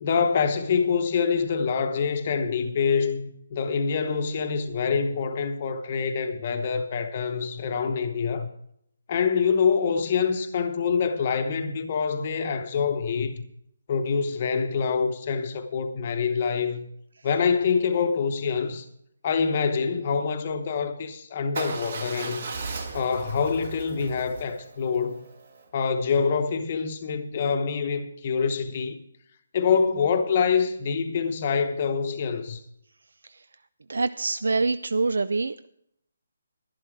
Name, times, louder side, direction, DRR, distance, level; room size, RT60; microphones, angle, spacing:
voice 1, 0.0-8.5 9.1-13.5 13.9-16.9 17.2-18.8 19.2-22.4 22.9-25.2 25.7-29.0 29.5-32.6, left 6 dB, 25° left, 0.9 m, -25 dB
Motorcycle / Engine starting / Idling, 21.5-25.6, right 4 dB, 40° right, 1.5 m, -37 dB
voice 2, 33.9-35.7, right 3 dB, 80° right, 0.4 m, -25 dB
12.0 x 11.5 x 4.6 m
hypercardioid pair, 175°, 0 cm